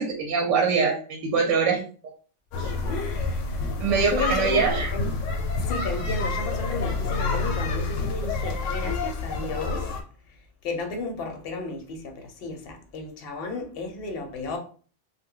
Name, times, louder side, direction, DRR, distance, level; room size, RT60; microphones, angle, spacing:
voice 1, 0.0-1.8 2.6-2.7 3.8-4.9, right 5 dB, 90° right, 0.9 m, -23 dB
sound 1, 2.5-10.0, left 3 dB, 90° left, 0.9 m, -28 dB
voice 2, 2.8-5.1 5.7-9.9 10.3-10.4 10.6-14.6, left 3 dB, 60° left, 0.8 m, -34 dB
2.2 x 2.1 x 3.6 m
omnidirectional pair, 1.2 m